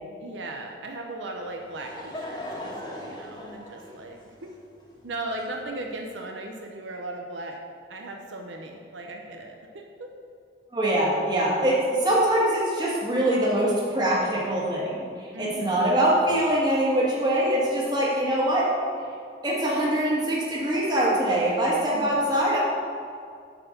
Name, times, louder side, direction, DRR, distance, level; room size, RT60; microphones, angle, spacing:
voice 1, 0.2-4.5 5.0-7.6 7.9-10.1 15.3-15.9 21.9-22.3, right 2 dB, 80° right, 2 dB, 0.7 m, -37 dB
Laughter / Crowd, 1.4-6.0, left 1 dB, 25° left, 1.4 m, -40 dB
voice 2, 10.7-18.7 19.4-22.6, right 1 dB, 25° right, -5 dB, 1.7 m, -23 dB
8.1 x 4.5 x 6.6 m, 2.3 s
head